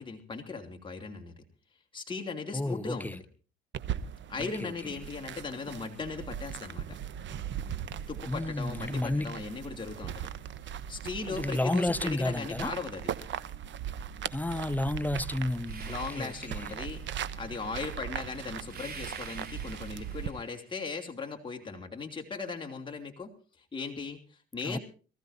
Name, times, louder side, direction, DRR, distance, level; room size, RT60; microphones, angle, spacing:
voice 1, 0.0-1.4 1.9-3.1 4.3-7.0 8.1-10.3 10.9-13.0 15.9-23.3 23.7-24.8, left 4 dB, 25° left, 2.7 m, -38 dB
voice 2, 2.5-3.2 4.4-4.9 8.3-9.4 11.3-12.7 14.3-16.7 24.6-24.8, left 1 dB, 10° left, 0.6 m, -32 dB
sound 1, 3.7-20.3, right 9 dB, 65° right, 1.1 m, -39 dB
sound 2, 15.6-17.3 18.7-20.7, right 5 dB, 50° right, 4.0 m, -47 dB
25.0 x 14.5 x 2.7 m
cardioid pair, 90°, 20 cm